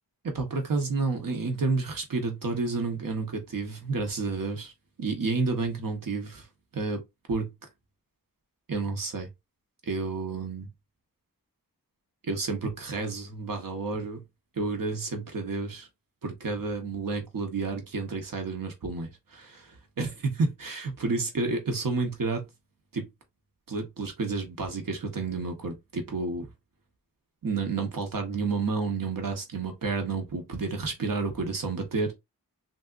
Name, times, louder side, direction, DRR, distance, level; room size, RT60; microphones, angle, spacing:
voice 1, 0.2-4.7 5.0-6.5 6.7-7.0 7.3-7.5 8.7-9.3 9.8-10.7 12.2-14.2 14.5-15.9 16.2-22.5 22.9-23.1 23.7-26.5 27.4-32.1, right 4 dB, 65° right, 1.2 m, -30 dB
3.4 x 2.6 x 2.4 m
cardioid pair, 55°, 36 cm